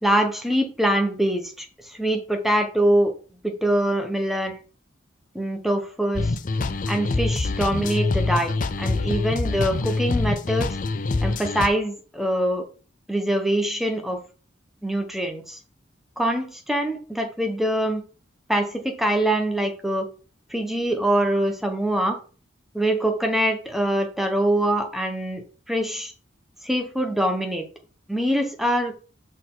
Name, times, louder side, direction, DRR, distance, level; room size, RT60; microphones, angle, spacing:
voice 1, 0.0-3.1 3.4-4.6 5.3-6.3 6.9-8.5 8.8-10.8 11.2-12.6 13.1-14.2 14.8-15.6 16.2-18.0 18.5-20.1 20.5-22.2 22.7-25.4 25.7-26.1 26.6-27.7 28.1-28.9, right 1 dB, ahead, 4 dB, 1.0 m, -24 dB
sound 1, 6.2-11.7, left 3 dB, 45° left, 0.5 m, -25 dB
6.3 x 4.2 x 3.9 m, 0.37 s
head